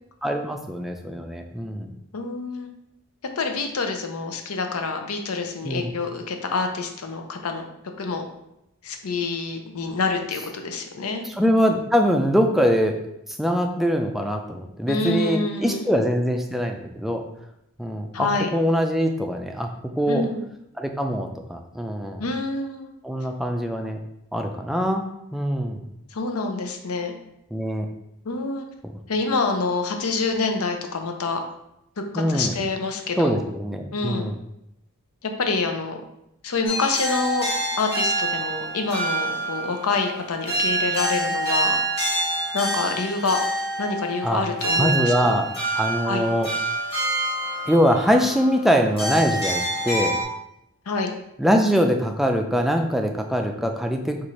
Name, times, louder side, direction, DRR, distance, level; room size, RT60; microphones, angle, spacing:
voice 1, 0.2-1.9 5.6-5.9 11.4-13.0 13.3-17.2 17.8-19.7 20.0-20.2 20.8-22.2 23.0-24.0 24.3-25.1 25.3-25.9 27.5-27.9 32.2-32.5 33.2-34.4 44.2-44.4 44.8-45.5 45.7-46.5 47.7-50.2 51.4-54.2, equal, ahead, 3 dB, 0.3 m, -23 dB
voice 2, 2.1-2.7 3.4-7.7 8.0-8.3 8.8-11.2 14.9-15.9 18.1-18.5 20.1-20.4 22.2-22.9 26.1-27.1 28.2-28.6 29.1-31.4 32.0-33.4 33.9-34.3 35.2-36.0 36.4-37.5 37.8-41.8 42.5-43.4 43.8-45.4 46.0-46.3 50.9-51.1, left 3 dB, 75° left, 5 dB, 0.6 m, -27 dB
sound 1, 36.7-50.2, right 1 dB, 25° left, 1.6 m, -27 dB
4.7 x 2.5 x 4.1 m, 0.83 s
head